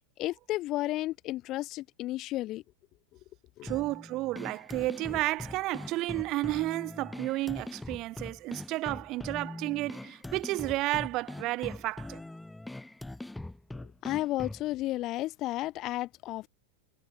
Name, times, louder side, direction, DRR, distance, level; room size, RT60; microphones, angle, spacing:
voice 1, 0.2-2.6 3.6-3.7 13.7-16.5, left 16 dB, 35° left, 1.1 m, -33 dB
voice 2, 3.6-12.2, right 19 dB, 40° right, 0.8 m, -32 dB
sound 1, 3.7-14.7, left 2 dB, 5° left, 1.1 m, -42 dB
figure-of-eight pair, 90°, 0 cm